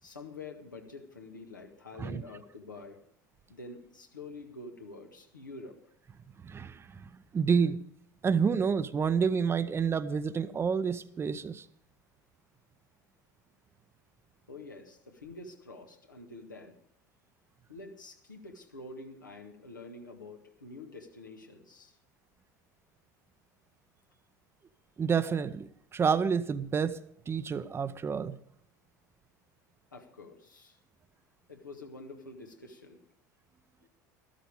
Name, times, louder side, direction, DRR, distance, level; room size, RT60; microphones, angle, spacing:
voice 1, 0.0-3.0 3.5-5.8 14.5-16.8 17.7-22.0 29.9-30.8 31.5-33.0 33.8-33.9, left 3 dB, 90° left, 1.8 m, -47 dB
voice 2, 6.4-7.0 7.3-7.8 8.2-11.6 25.0-27.0 27.3-28.4, right 6 dB, 25° right, 0.7 m, -29 dB
13.5 x 12.5 x 5.0 m
figure-of-eight pair, 75°, 10 cm